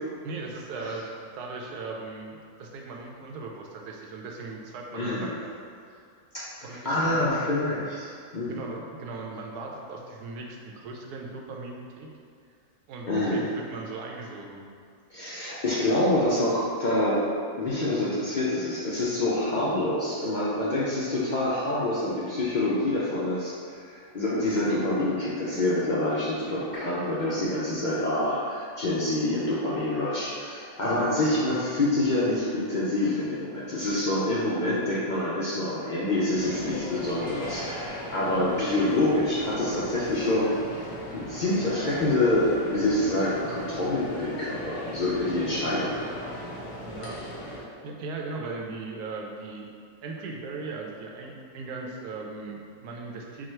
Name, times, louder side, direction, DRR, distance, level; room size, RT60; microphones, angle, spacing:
voice 1, 0.2-5.5 5.9-6.1 6.6-7.3 8.5-12.1 12.9-14.7 30.9-31.1 46.8-49.7 50.0-53.5, right 3 dB, 85° right, 0 dB, 1.2 m, -38 dB
voice 2, 4.9-5.3 6.3-6.4 6.7-8.6 13.1-13.5 15.1-17.2 17.6-40.5 41.1-46.0, left 1 dB, 90° left, -8 dB, 0.4 m, -26 dB
sound 1, 36.3-47.6, equal, 70° left, 1.3 m, -38 dB
4.7 x 2.4 x 4.4 m, 2.3 s
omnidirectional pair, 1.6 m